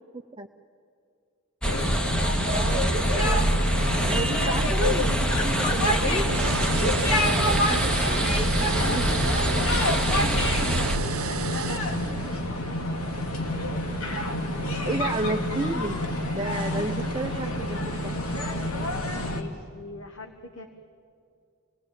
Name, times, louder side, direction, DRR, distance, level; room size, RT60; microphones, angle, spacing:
sound 1, 1.6-19.4, left 1 dB, 85° left, 2.5 m, -28 dB
sound 2, 1.6-11.0, right 1 dB, 5° left, 1.1 m, -25 dB
voice 1, 2.5-2.8 3.3-3.5 4.1-6.2 6.8-8.2 8.9-9.2 14.8-18.1, right 2 dB, 20° right, 3 dB, 0.6 m, -32 dB
voice 2, 3.9-4.4 7.9-8.4 8.7-12.0 16.7-16.9 19.3-20.7, left 3 dB, 65° left, 6 dB, 1.4 m, -39 dB
sound 3, 6.3-12.5, right 6 dB, 80° right, 0.8 m, -33 dB
27.0 x 19.0 x 8.9 m, 2.5 s
head